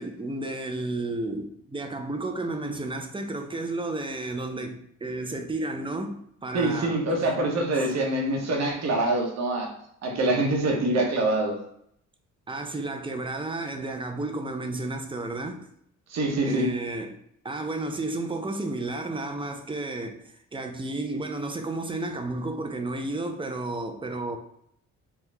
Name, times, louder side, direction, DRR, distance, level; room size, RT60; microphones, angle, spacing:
voice 1, 0.0-7.0 12.5-15.7 16.4-17.2 17.4-24.4, right 2 dB, 15° right, 0.5 m, -32 dB
voice 2, 6.5-9.7 10.0-11.6 16.1-16.7, right 2 dB, 60° right, 1.1 m, -25 dB
4.6 x 2.3 x 3.3 m
cardioid pair, 90°, 30 cm